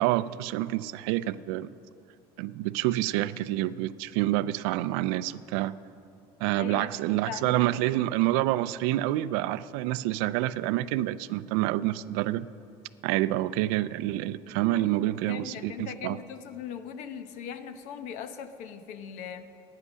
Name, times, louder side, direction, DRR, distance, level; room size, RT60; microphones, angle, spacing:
voice 1, 0.0-1.7 2.4-5.7 6.4-12.5 13.0-16.2, right 16 dB, 80° right, 16 dB, 0.4 m, -28 dB
voice 2, 6.5-7.8 14.7-19.5, left 8 dB, 65° left, 10 dB, 0.9 m, -40 dB
15.0 x 9.9 x 6.3 m, 2.5 s
cardioid pair, 145°, 14 cm